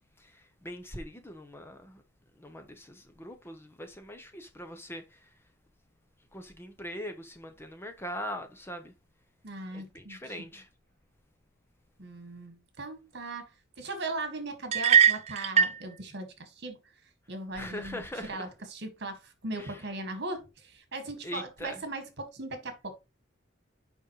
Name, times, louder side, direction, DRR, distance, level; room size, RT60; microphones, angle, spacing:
voice 1, 0.2-2.0 2.4-5.3 6.3-8.9 9.7-10.7 17.5-18.5 19.5-19.9 21.2-21.8, equal, 10° left, 0.8 m, -41 dB
voice 2, 9.4-10.2 12.0-13.5 13.8-16.8 17.3-23.0, right 2 dB, 60° right, 1.7 m, -38 dB
sound 1, 14.7-15.8, right 8 dB, 35° right, 0.4 m, -21 dB
7.1 x 5.3 x 3.0 m
head